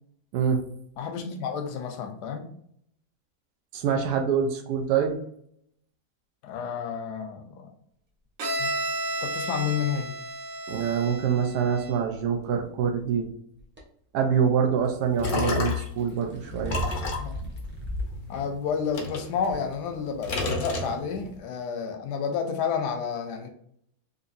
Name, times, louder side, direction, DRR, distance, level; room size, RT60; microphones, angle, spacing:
voice 1, 0.3-0.6 3.7-5.2 10.7-13.3 14.1-16.8, right 7 dB, 80° right, 4 dB, 1.2 m, -25 dB
voice 2, 1.0-2.5 6.4-7.7 8.6-8.7 9.2-10.1 17.2-17.4 18.3-23.5, left 6 dB, 90° left, 5 dB, 1.2 m, -30 dB
Bowed string instrument, 8.4-12.1, right 1 dB, 60° right, 1.2 m, -32 dB
sound 1, 13.6-13.8 15.8-18.2 18.6-18.7 19.5-19.6, left 1 dB, 10° right, 0.6 m, -35 dB
sound 2, 14.9-16.0 16.6-18.4 18.9-19.9 20.2-21.3, left 4 dB, 65° left, 0.5 m, -30 dB
4.0 x 2.6 x 2.6 m, 0.67 s
omnidirectional pair, 1.7 m